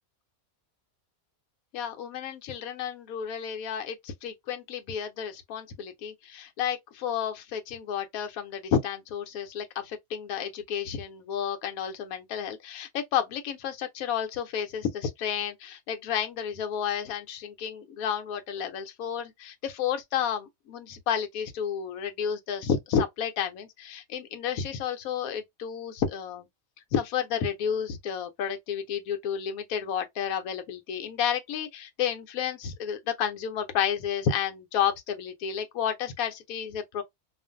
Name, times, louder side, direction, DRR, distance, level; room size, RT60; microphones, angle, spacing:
voice 1, 1.7-26.5 26.9-37.0, left 8 dB, 75° left, 1.1 m, -31 dB
2.5 x 2.4 x 2.5 m
omnidirectional pair, 1.5 m